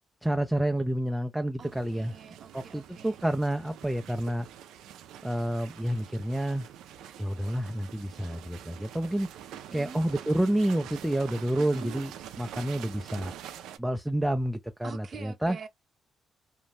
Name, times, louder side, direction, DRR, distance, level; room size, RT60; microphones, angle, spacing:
voice 1, 0.2-2.1 2.5-4.5 5.2-6.7 7.2-9.3 9.7-12.1 12.4-13.3 13.8-15.6, right 1 dB, 5° right, 0.3 m, -29 dB
voice 2, 1.6-3.3 9.7-10.0 11.6-12.0 14.8-15.7, right 5 dB, 45° right, 0.7 m, -45 dB
sound 1, 1.6-13.8, right 10 dB, 85° right, 0.3 m, -46 dB
2.5 x 2.1 x 3.1 m
cardioid pair, 90°, 0 cm